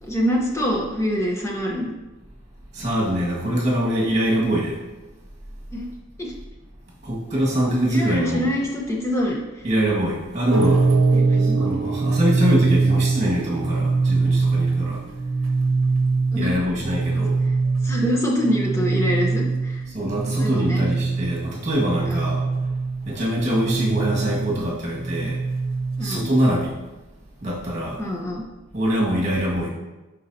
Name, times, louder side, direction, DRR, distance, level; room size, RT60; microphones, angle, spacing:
voice 1, 0.0-1.9 5.7-5.9 6.2-6.3 7.9-9.7 11.1-11.7 16.3-16.5 17.8-19.9 20.4-20.9 22.0-22.3 26.0-26.3 28.0-28.4, equal, 15° left, -1 dB, 0.9 m, -25 dB
voice 2, 2.7-4.8 7.0-8.5 9.6-10.9 11.4-15.0 16.3-17.4 19.9-22.4 23.1-25.4 26.0-26.7 27.4-28.0 28.7-29.7, equal, 35° right, -4 dB, 1.8 m, -23 dB
sound 1, 10.5-26.4, right 3 dB, 70° right, 0.9 m, -23 dB
10.5 x 4.4 x 2.8 m, 1.1 s
head